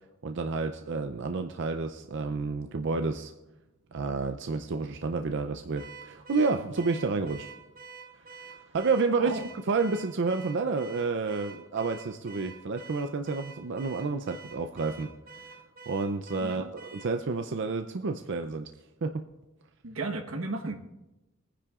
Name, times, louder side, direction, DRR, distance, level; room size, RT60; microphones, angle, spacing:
voice 1, 0.2-3.3 3.9-7.5 8.4-9.4 9.7-15.1 15.9-18.7 19.0-19.2, right 4 dB, 60° right, 7 dB, 0.5 m, -30 dB
Car / Alarm, 5.7-17.2, right 5 dB, 45° right, 0.9 m, -48 dB
voice 2, 16.4-16.7 19.8-20.9, right 3 dB, 90° right, 4 dB, 1.2 m, -34 dB
21.0 x 10.0 x 2.4 m, 1.0 s
head